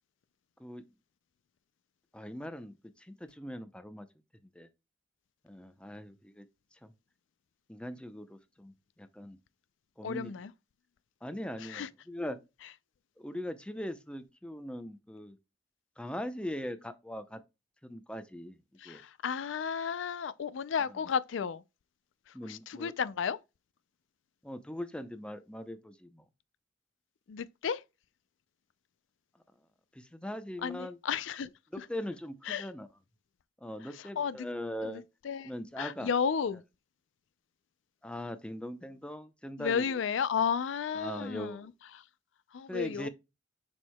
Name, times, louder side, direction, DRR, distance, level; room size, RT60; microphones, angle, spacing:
voice 1, 2.1-4.1 4.5-4.7 5.4-6.4 6.8-6.9 7.7-8.7 9.0-9.4 10.0-10.3 11.2-12.4 13.2-15.4 16.0-17.4 17.8-18.6 18.8-19.0 22.3-22.9 24.4-26.2 29.9-31.0 31.7-32.9 33.6-35.0 35.4-36.1 38.0-40.0 40.9-41.7 42.7-43.1, left 1 dB, 5° left, 0.6 m, -40 dB
voice 2, 10.0-10.5 11.6-11.9 18.8-21.6 22.5-23.4 27.3-27.8 30.6-31.5 31.8-31.9 32.5-32.7 33.9-34.4 34.8-35.5 35.8-36.6 39.6-41.7 42.5-43.1, left 7 dB, 80° left, 0.4 m, -33 dB
7.2 x 6.4 x 2.2 m
head